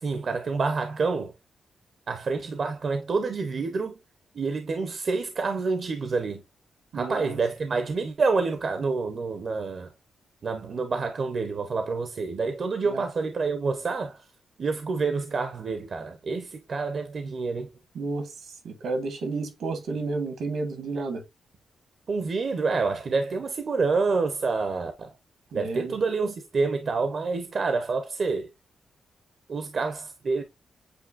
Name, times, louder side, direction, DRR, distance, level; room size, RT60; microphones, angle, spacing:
voice 1, 0.0-1.3 2.1-4.0 4.3-6.4 6.9-9.9 10.4-14.2 14.6-17.7 22.1-25.1 25.5-28.5 29.5-30.4, right 4 dB, 50° right, 0.6 m, -28 dB
voice 2, 6.9-7.4 12.8-13.1 17.9-21.2 25.5-26.0, right 3 dB, 80° right, 1.3 m, -31 dB
7.8 x 2.6 x 2.4 m
cardioid pair, 110°, 0 cm